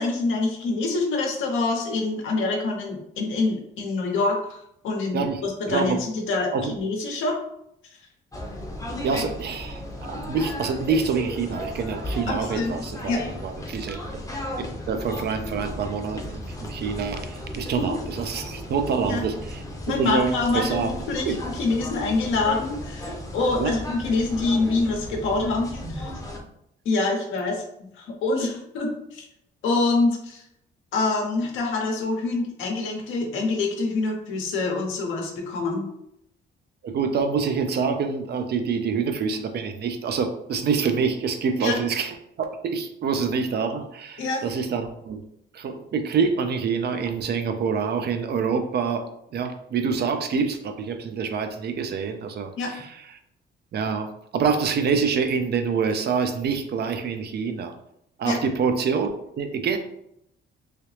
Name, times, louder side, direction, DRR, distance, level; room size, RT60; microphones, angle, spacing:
voice 1, 0.0-7.3 12.3-12.7 13.1-13.2 17.8-18.0 19.0-19.2 19.9-26.1 26.8-27.6 27.9-29.3 29.6-30.4 30.9-35.9 41.6-41.8 44.2-44.4 52.6-52.7 58.2-58.4, left 3 dB, 85° left, 1 dB, 0.8 m, -26 dB
voice 2, 5.7-6.0 6.5-6.7 9.0-13.1 13.4-14.2 14.6-19.6 20.0-20.9 21.3-21.4 23.6-23.8 36.8-42.1 42.4-45.2 45.5-49.1 49.3-52.5 53.7-57.7 58.2-59.8, right 5 dB, 55° right, 7 dB, 0.5 m, -26 dB
sound 1, 8.3-26.4, left 1 dB, 15° left, 0.7 m, -35 dB
3.2 x 2.8 x 3.2 m, 0.78 s
cardioid pair, 90°, 20 cm